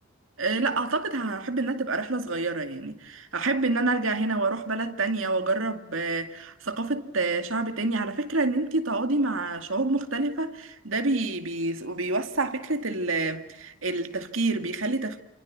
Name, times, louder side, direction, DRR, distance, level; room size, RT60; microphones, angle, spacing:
voice 1, 0.4-15.2, right 3 dB, 80° right, 2.3 m, -28 dB
29.0 x 29.0 x 6.1 m
head